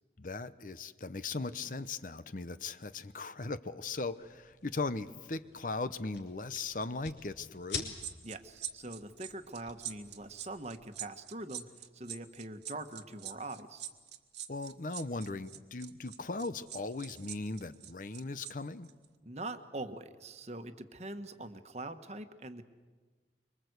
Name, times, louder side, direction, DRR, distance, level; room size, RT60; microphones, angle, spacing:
voice 1, 0.2-7.9 14.5-18.9, left 3 dB, 45° left, 13 dB, 0.8 m, -38 dB
sound 1, 4.1-10.8, left 5 dB, 80° left, 4.1 m, -48 dB
sound 2, 8.0-18.5 18.8-19.0, right 10 dB, 70° right, 1.5 m, -44 dB
voice 2, 8.2-13.8 19.2-22.6, right 2 dB, 35° right, 8 dB, 1.3 m, -43 dB
25.5 x 24.0 x 8.1 m, 1.4 s
head